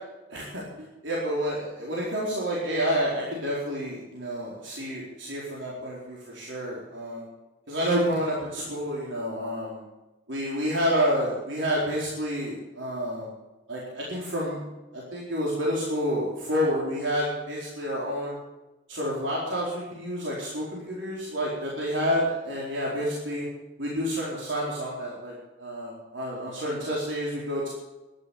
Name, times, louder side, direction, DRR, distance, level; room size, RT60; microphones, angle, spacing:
voice 1, 0.3-7.2 7.7-9.8 10.3-13.3 13.7-14.6 14.9-18.4 18.9-23.4 23.8-27.7, equal, 80° right, -5 dB, 4.4 m, -29 dB
13.5 x 11.5 x 8.5 m, 1.1 s
head